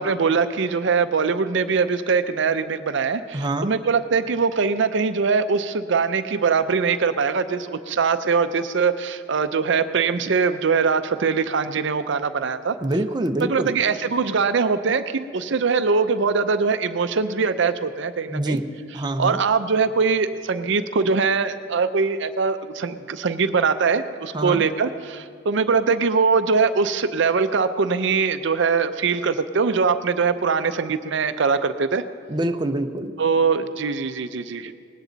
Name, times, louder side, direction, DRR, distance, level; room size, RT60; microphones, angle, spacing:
voice 1, 0.0-12.8 13.4-18.6 19.2-32.0 33.2-34.7, right 5 dB, 70° right, 10 dB, 0.6 m, -22 dB
voice 2, 3.3-3.7 12.8-13.8 18.3-18.6 18.9-19.4 24.3-24.6 32.3-33.1, right 1 dB, 25° right, 6 dB, 0.6 m, -25 dB
19.0 x 16.5 x 4.0 m, 2.1 s
head